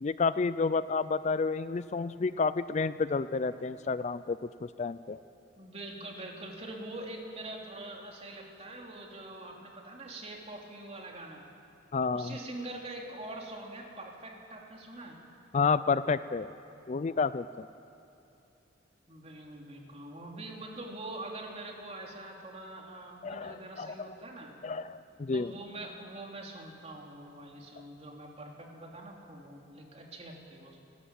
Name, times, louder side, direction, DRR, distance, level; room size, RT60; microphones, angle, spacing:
voice 1, 0.0-5.2 11.9-12.4 15.5-16.5 16.9-17.7 23.2-24.1 24.6-25.5, left 4 dB, 40° left, 15 dB, 0.4 m, -30 dB
voice 2, 5.5-11.4 12.1-15.2 19.1-24.5 25.3-30.8, right 2 dB, 35° right, 0 dB, 3.1 m, -44 dB
28.5 x 12.5 x 8.9 m, 2.7 s
head